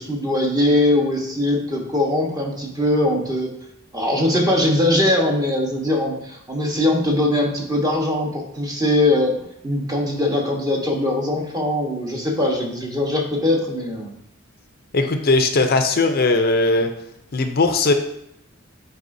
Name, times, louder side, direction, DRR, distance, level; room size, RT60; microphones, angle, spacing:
voice 1, 0.0-3.5 3.9-14.1, left 1 dB, 20° right, 0 dB, 1.2 m, -21 dB
voice 2, 14.9-16.9 17.3-17.9, left 3 dB, 50° left, 6 dB, 0.6 m, -18 dB
9.3 x 4.7 x 2.6 m, 0.76 s
head